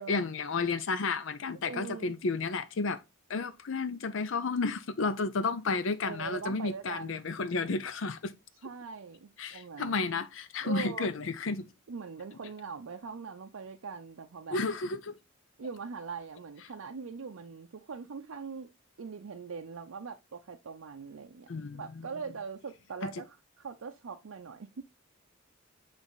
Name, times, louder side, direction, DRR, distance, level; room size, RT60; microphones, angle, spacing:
voice 1, 0.1-3.0 3.3-8.4 9.4-11.7 14.5-15.2 21.5-21.8, left 4 dB, 65° left, 0.6 m, -32 dB
voice 2, 1.6-2.2 6.0-7.2 8.6-10.0 10.6-11.1 11.9-14.6 15.6-18.7 19.0-24.8, right 5 dB, 85° right, 0.5 m, -42 dB
7.2 x 3.4 x 3.9 m
head